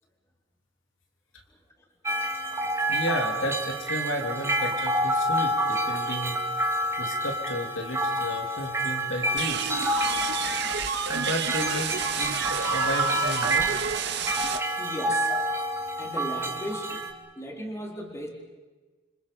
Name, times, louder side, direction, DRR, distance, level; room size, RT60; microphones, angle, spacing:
sound 1, 2.1-17.1, right 1 dB, 15° right, 2.2 m, -28 dB
voice 1, 2.9-6.4 7.0-9.8 10.8-13.7, left 1 dB, 75° left, 2 dB, 3.5 m, -33 dB
sound 2, 9.4-14.6, right 6 dB, 60° right, 2.0 m, -30 dB
voice 2, 14.8-15.3 16.0-18.3, equal, 15° left, 0 dB, 4.1 m, -37 dB
29.0 x 26.5 x 5.6 m, 1.3 s
head